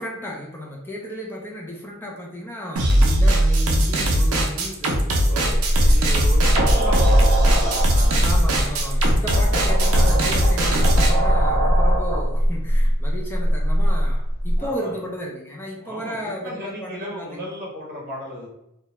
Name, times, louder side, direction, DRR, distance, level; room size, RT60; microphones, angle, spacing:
voice 1, 0.0-5.1 5.6-6.0 8.2-17.5, equal, 10° left, -1 dB, 0.3 m, -33 dB
sound 1, 2.8-11.1, right 1 dB, 70° right, 0.5 m, -20 dB
voice 2, 5.3-8.4 9.9-10.4 14.6-15.0 15.8-18.5, left 1 dB, 40° right, -3 dB, 0.7 m, -35 dB
sound 2, 5.5-14.7, equal, 25° left, 0.8 m, -20 dB
2.3 x 2.1 x 2.9 m, 0.85 s
head